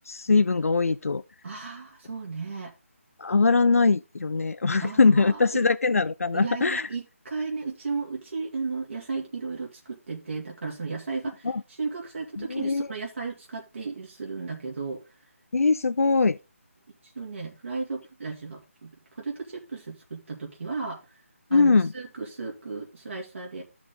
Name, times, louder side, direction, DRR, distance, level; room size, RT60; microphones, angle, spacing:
voice 1, 0.1-1.2 3.2-6.9 11.5-11.6 12.5-12.9 15.5-16.4 21.5-21.9, left 4 dB, 85° left, 0.5 m, -22 dB
voice 2, 1.4-2.7 4.8-5.6 6.3-15.0 17.0-21.2 21.5-23.6, right 4 dB, 60° right, 2.5 m, -35 dB
13.0 x 6.0 x 3.8 m
figure-of-eight pair, 165°, 8 cm